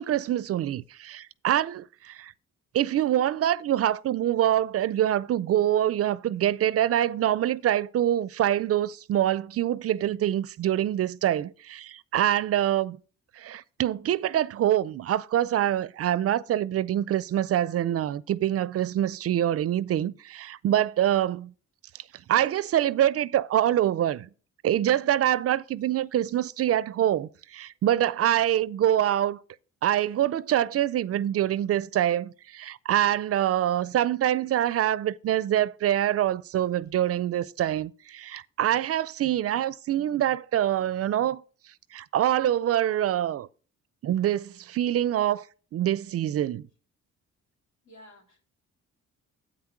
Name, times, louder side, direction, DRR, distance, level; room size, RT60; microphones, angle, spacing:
voice 1, 0.0-2.3 2.7-13.0 13.4-21.5 22.3-24.3 24.6-29.4 29.8-41.4 41.9-43.5 44.0-45.4 45.7-46.7, right 11 dB, 50° right, 0.4 m, -25 dB
voice 2, 47.8-48.5, equal, 75° left, 3.4 m, -52 dB
8.5 x 5.8 x 6.1 m
cardioid pair, 90°, 30 cm